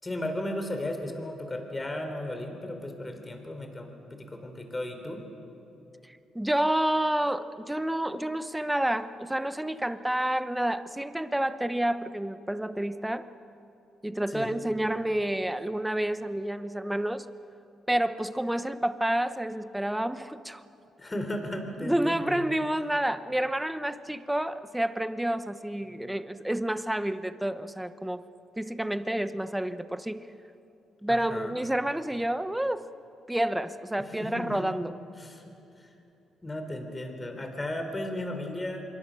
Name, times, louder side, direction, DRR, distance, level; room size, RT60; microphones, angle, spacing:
voice 1, 0.0-5.2 14.3-14.6 21.0-22.4 25.9-26.1 31.1-31.6 34.0-34.7 35.2-35.4 35.8-35.9 36.4-38.9, left 1 dB, 20° left, 5 dB, 3.7 m, -35 dB
voice 2, 6.1-13.3 14.0-17.3 17.9-20.6 21.8-28.2 28.6-30.3 31.0-32.9 33.3-34.9, right 1 dB, 5° right, 12 dB, 0.9 m, -29 dB
26.0 x 22.5 x 6.5 m, 2.9 s
cardioid pair, 90°, 0 cm